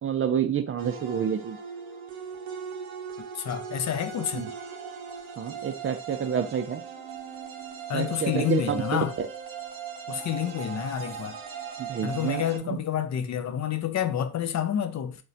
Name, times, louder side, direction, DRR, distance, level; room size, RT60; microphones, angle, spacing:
voice 1, 0.0-1.6 4.3-4.5 5.4-6.8 7.9-8.8 9.2-9.3 11.8-12.8, right 8 dB, 35° right, 0.4 m, -28 dB
sound 1, 0.8-12.6, right 6 dB, 65° right, 0.7 m, -39 dB
voice 2, 3.3-4.5 7.9-9.1 10.1-11.4 12.0-15.2, left 9 dB, 45° left, 0.4 m, -29 dB
3.1 x 2.1 x 2.6 m
supercardioid pair, 50°, 39 cm